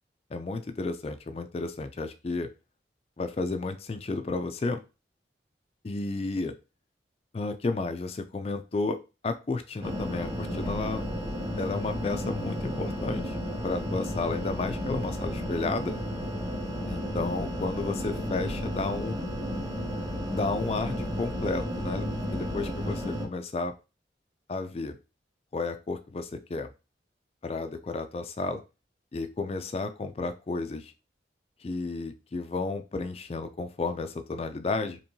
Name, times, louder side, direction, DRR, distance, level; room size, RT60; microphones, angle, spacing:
voice 1, 0.3-2.5 3.2-4.8 5.8-6.5 7.3-11.0 11.6-13.4 13.6-16.0 16.9-19.2 20.3-22.1 22.3-23.7 24.5-25.0 25.5-26.7 27.4-28.6 29.1-30.9 31.6-35.0, left 3 dB, 35° left, 9 dB, 0.3 m, -32 dB
sound 1, 9.8-23.2, equal, 35° right, 1.6 m, -33 dB
4.5 x 3.0 x 2.7 m, 0.29 s
head